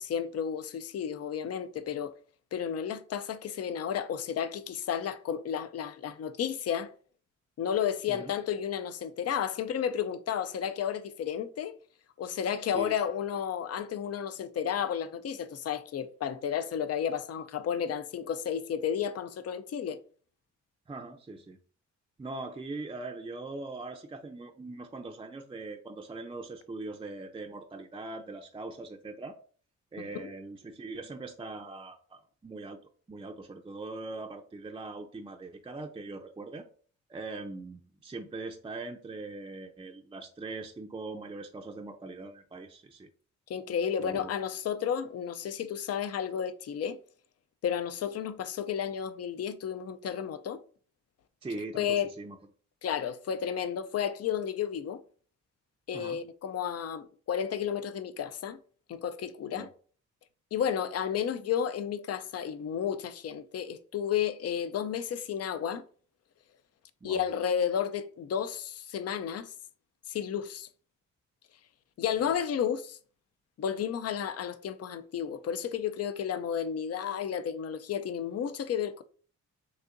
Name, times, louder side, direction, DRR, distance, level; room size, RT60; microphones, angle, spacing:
voice 1, 0.0-2.1 2.5-6.9 7.6-11.7 12.2-20.0 30.0-30.3 43.5-47.0 47.6-50.6 51.7-52.1 52.8-55.0 55.9-58.6 58.9-59.7 60.5-65.8 67.0-69.5 70.1-70.7 72.0-73.0 73.6-79.0, left 8 dB, 55° left, 0.5 m, -32 dB
voice 2, 12.6-13.0 20.9-21.6 22.2-29.4 29.9-32.8 33.1-36.7 37.1-43.1 44.0-44.3 51.4-52.4 55.9-56.2 59.6-59.7 67.0-67.2 72.2-72.3, right 3 dB, 15° right, 0.5 m, -41 dB
6.3 x 2.7 x 2.6 m
cardioid pair, 70°, 30 cm